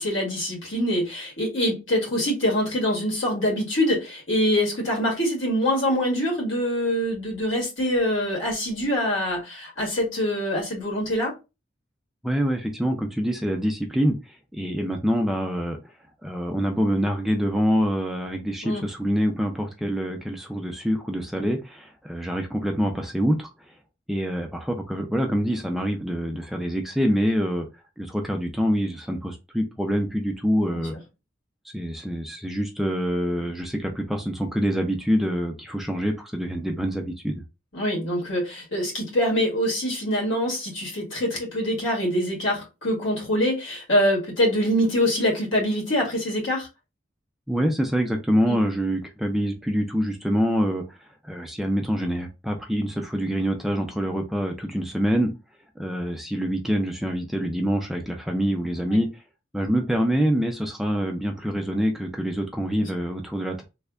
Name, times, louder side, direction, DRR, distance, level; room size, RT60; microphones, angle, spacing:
voice 1, 0.0-11.3 18.6-18.8 30.7-30.8 37.7-46.7 48.5-48.6 58.8-59.0 62.8-62.9, equal, 75° left, 1.8 m, -24 dB
voice 2, 12.2-15.8 16.2-23.7 24.1-27.7 28.0-30.9 31.6-37.4 47.5-55.3 55.8-59.2 59.5-63.6, equal, ahead, 0.4 m, -25 dB
3.2 x 2.1 x 3.5 m
head